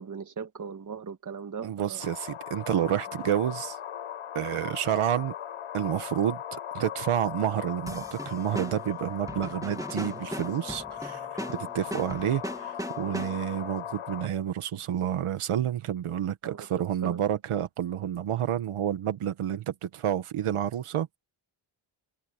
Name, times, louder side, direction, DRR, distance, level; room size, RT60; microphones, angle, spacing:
voice 1, 0.0-2.0 2.8-2.9 16.4-17.2, right 6 dB, 40° right, 1.8 m, -39 dB
voice 2, 1.6-3.8 4.4-5.3 5.7-11.2 11.5-21.2, right 10 dB, 85° right, 1.8 m, -29 dB
sound 1, 2.0-14.3, left 10 dB, 85° left, 6.9 m, -39 dB
sound 2, 7.9-13.6, right 1 dB, 5° right, 1.8 m, -39 dB
cardioid pair, 105°, 49 cm